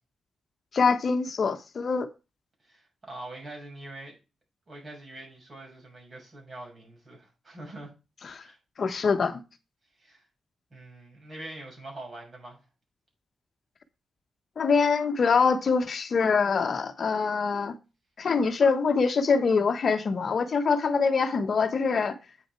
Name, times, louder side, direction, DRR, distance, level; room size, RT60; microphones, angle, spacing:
voice 1, 0.7-2.1 8.2-8.4 8.8-9.4 14.6-17.7 18.2-22.2, left 5 dB, 55° left, 1.0 m, -24 dB
voice 2, 2.6-4.2 4.7-7.9 8.4-8.6 10.0-10.2 10.7-12.6, right 2 dB, 40° right, 6.4 m, -44 dB
8.5 x 6.3 x 4.5 m
cardioid pair, 95°, 0 cm